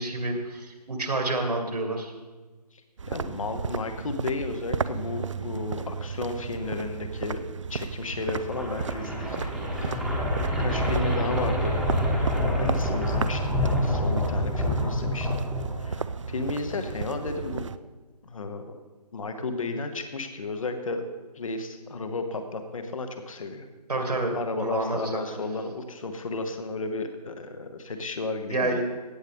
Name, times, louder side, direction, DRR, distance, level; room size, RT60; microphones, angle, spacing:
voice 1, 0.0-2.1 23.9-25.2 28.5-28.8, right 2 dB, 70° right, 3 dB, 2.2 m, -28 dB
sound 1, 3.0-17.8, right 5 dB, 50° right, 0.4 m, -34 dB
voice 2, 3.1-7.4 7.7-9.5 9.8-10.0 10.6-11.8 12.5-15.4 15.8-17.6 18.2-18.7 19.1-21.0 21.3-23.7 24.0-28.8, left 3 dB, 55° left, 8 dB, 1.1 m, -33 dB
sound 2, 8.1-16.2, equal, ahead, 1.1 m, -27 dB
16.5 x 7.7 x 3.6 m, 1.3 s
figure-of-eight pair, 150°, 21 cm